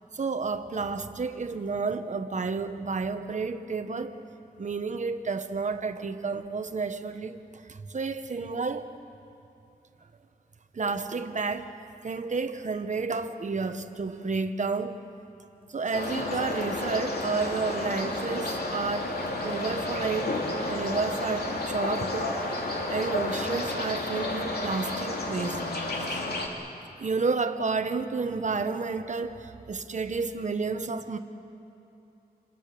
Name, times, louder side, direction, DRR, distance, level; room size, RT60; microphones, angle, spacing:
voice 1, 0.1-4.2 4.6-7.4 7.7-8.9 10.7-11.7 12.0-15.0 15.7-19.2 19.4-20.3 20.7-22.3 22.9-25.6 26.1-26.2 27.0-31.2, right 4 dB, 50° right, 9 dB, 1.2 m, -31 dB
sound 1, 15.9-26.5, left 2 dB, 75° left, 3.0 m, -31 dB
28.0 x 23.0 x 6.8 m, 2.9 s
wide cardioid pair, 150°, 16 cm